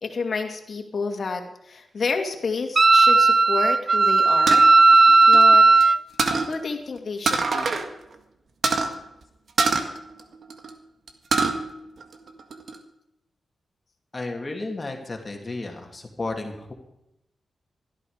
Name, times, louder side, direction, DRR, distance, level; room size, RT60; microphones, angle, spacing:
voice 1, 0.0-4.7 5.3-5.9 6.5-7.8, left 4 dB, 55° left, 5 dB, 2.3 m, -30 dB
Wind instrument woodwind instrument, 2.8-6.0, right 3 dB, 35° right, 0.4 m, -15 dB
sound 1, 4.5-5.8 6.2-6.5 7.3-7.9 8.1-8.2 8.6-8.9 9.6-10.7 11.1-11.6 12.0-12.8, right 4 dB, 60° right, 1.8 m, -24 dB
voice 2, 14.1-16.7, left 2 dB, 30° left, 2 dB, 2.7 m, -33 dB
17.0 x 12.5 x 5.1 m, 0.86 s
cardioid pair, 85°, 0 cm